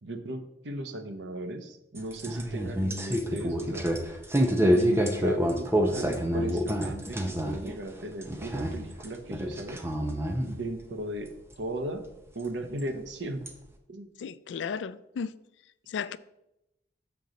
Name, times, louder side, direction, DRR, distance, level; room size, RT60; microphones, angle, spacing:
voice 1, 0.0-3.9 4.5-9.8 10.5-11.3 11.6-12.0 12.3-13.4 13.9-14.1, right 1 dB, 75° right, 0.8 m, -37 dB
Bead curtain, 2.0-7.7 8.0-9.1 9.3-10.5 11.5-11.6 12.8-12.9 13.5-13.6, equal, 15° right, 0.6 m, -27 dB
voice 2, 14.2-15.3 15.9-16.2, left 6 dB, 75° left, 0.3 m, -34 dB
6.9 x 6.1 x 3.9 m
head